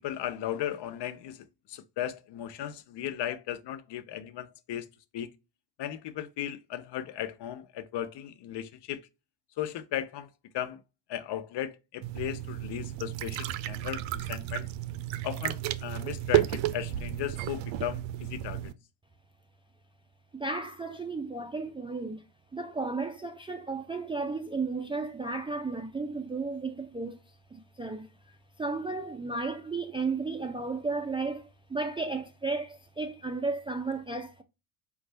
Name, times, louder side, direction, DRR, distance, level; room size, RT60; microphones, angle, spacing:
voice 1, 0.0-4.9 5.1-5.3 5.8-9.1 9.6-10.3 10.5-10.8 11.1-14.7 15.2-18.7, left 11 dB, 55° left, 0.7 m, -36 dB
sound 1, 12.0-18.7, right 14 dB, 65° right, 0.6 m, -32 dB
voice 2, 20.3-22.2 22.5-27.2 27.5-28.1 28.6-34.4, right 3 dB, 10° right, 0.4 m, -34 dB
5.2 x 2.4 x 3.2 m
cardioid pair, 105°, 50 cm